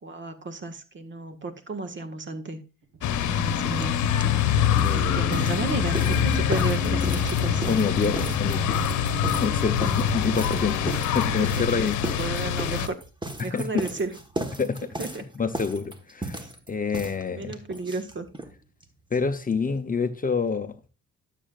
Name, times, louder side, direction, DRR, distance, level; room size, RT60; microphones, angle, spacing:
voice 1, 0.0-2.6 3.1-4.0 4.8-7.6 11.4-11.9 12.1-13.0 13.4-14.2 15.0-15.2 16.4-16.5 17.3-18.3, right 3 dB, 40° right, 1.6 m, -33 dB
Livestock farm animals working animals, 2.8-11.9, right 5 dB, 75° right, 1.7 m, -38 dB
sound 1, 3.0-12.9, left 9 dB, 70° left, 0.9 m, -25 dB
sound 2, 3.8-3.9 4.1-18.5 18.8-18.9 19.1-19.2 19.5-19.6, right 2 dB, 15° right, 1.4 m, -36 dB
voice 2, 4.8-5.4 7.7-8.8 9.4-11.9 13.4-13.7 14.6-14.9 15.4-16.4 16.7-17.6 19.1-20.7, left 5 dB, 30° left, 0.8 m, -27 dB
12.0 x 7.5 x 2.5 m
cardioid pair, 90°, 30 cm